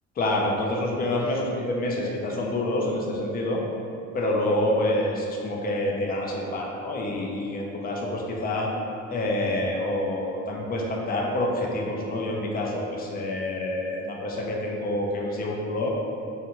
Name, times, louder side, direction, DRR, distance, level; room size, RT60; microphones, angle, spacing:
voice 1, 0.2-3.6 4.1-8.7 9.1-15.9, left 1 dB, 30° left, -1 dB, 0.4 m, -27 dB
2.5 x 2.2 x 2.8 m, 2.6 s
cardioid pair, 90°, 30 cm